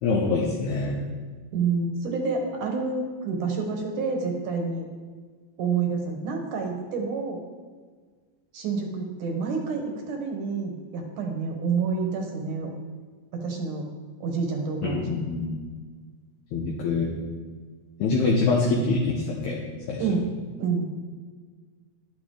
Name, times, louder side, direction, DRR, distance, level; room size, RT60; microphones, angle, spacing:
voice 1, 0.0-1.1 14.8-15.6 16.5-17.1 18.0-19.6 19.9-20.0, left 3 dB, 70° left, -2 dB, 1.9 m, -25 dB
voice 2, 1.5-4.9 5.6-7.4 8.5-12.7 13.3-13.9 14.2-15.2 20.0-20.2 20.6-20.9, right 5 dB, 65° right, 2 dB, 2.4 m, -28 dB
10.5 x 10.5 x 3.8 m, 1.5 s
omnidirectional pair, 4.4 m